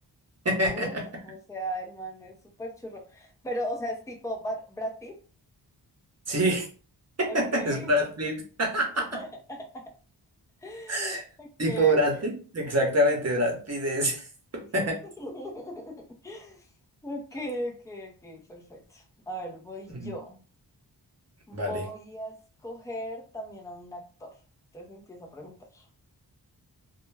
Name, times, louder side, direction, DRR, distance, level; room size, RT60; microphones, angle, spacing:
voice 1, 0.4-1.0 6.3-6.7 7.2-9.2 10.9-11.2 11.6-14.2 14.5-15.0 19.9-20.1 21.5-21.8, right 1 dB, 40° right, 1 dB, 0.9 m, -26 dB
voice 2, 1.2-5.2 7.3-7.9 9.0-9.8 10.6-11.9 15.2-16.6 17.0-20.4 21.5-22.4 22.6-24.3 24.7-25.8, equal, 10° left, 1 dB, 0.6 m, -38 dB
2.3 x 2.1 x 3.2 m, 0.38 s
wide cardioid pair, 80°, 42 cm